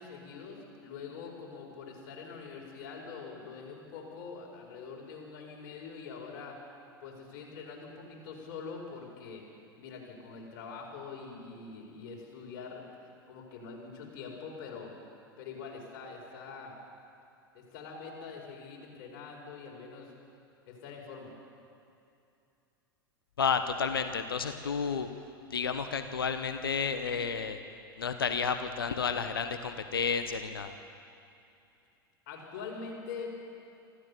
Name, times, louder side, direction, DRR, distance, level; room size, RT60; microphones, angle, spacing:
voice 1, 0.0-6.6 7.0-9.4 9.8-12.8 13.3-14.9 15.4-16.7 17.5-20.1 20.7-21.3 32.3-33.3, left 5 dB, 50° left, 0 dB, 5.0 m, -44 dB
voice 2, 23.4-25.1 25.5-27.6 28.0-30.7, left 6 dB, 70° left, 9 dB, 1.1 m, -31 dB
25.0 x 15.0 x 6.9 m, 2.6 s
figure-of-eight pair, 85°, 12 cm